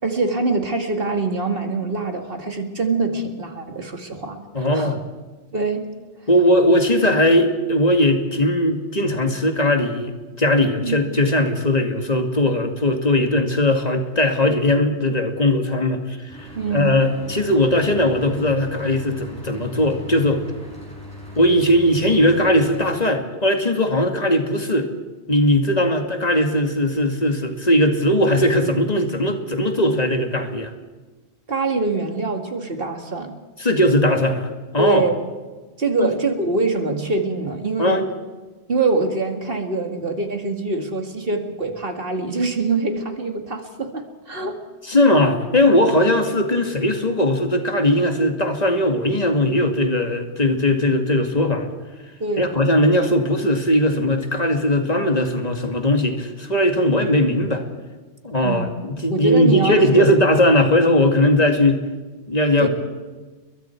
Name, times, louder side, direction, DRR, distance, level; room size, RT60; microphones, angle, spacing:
voice 1, 0.0-4.9 5.5-5.9 10.8-11.0 16.5-17.0 31.5-33.3 34.8-35.1 35.8-38.0 38.7-44.6 52.2-52.6 58.4-58.7 59.1-60.0 62.6-62.7, right 3 dB, 55° right, 5 dB, 2.5 m, -24 dB
voice 2, 4.5-5.0 6.3-20.4 21.4-24.9 25.3-30.7 33.6-35.0 36.0-36.1 37.8-38.0 44.8-51.7 52.4-57.6 58.2-61.9 62.3-62.7, left 1 dB, 35° left, 5 dB, 2.3 m, -19 dB
Mechanical fan, 16.3-22.9, left 1 dB, 20° left, 7.5 m, -39 dB
30.0 x 22.0 x 4.6 m, 1.3 s
omnidirectional pair, 1.1 m